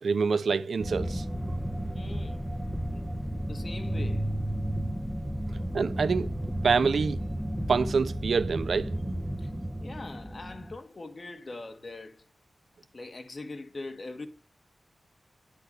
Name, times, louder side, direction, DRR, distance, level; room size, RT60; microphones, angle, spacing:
voice 1, 0.0-1.2 5.7-6.3 6.6-7.2 7.7-9.0, right 5 dB, 80° right, 0.6 m, -26 dB
sound 1, 0.8-10.8, equal, 5° right, 1.5 m, -33 dB
voice 2, 1.9-2.5 2.9-4.3 9.4-9.5 9.8-12.2 12.9-14.3, left 3 dB, 45° left, 2.1 m, -42 dB
10.5 x 8.6 x 6.7 m
wide cardioid pair, 85°, 0 cm